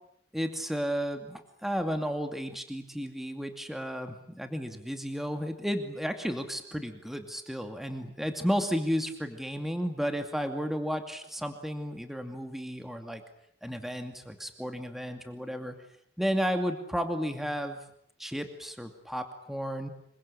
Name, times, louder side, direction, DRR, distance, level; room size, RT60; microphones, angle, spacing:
voice 1, 0.3-13.2 13.6-15.7 16.2-17.8 18.2-19.9, equal, ahead, 6 dB, 2.5 m, -33 dB
27.0 x 24.0 x 8.8 m, 0.67 s
head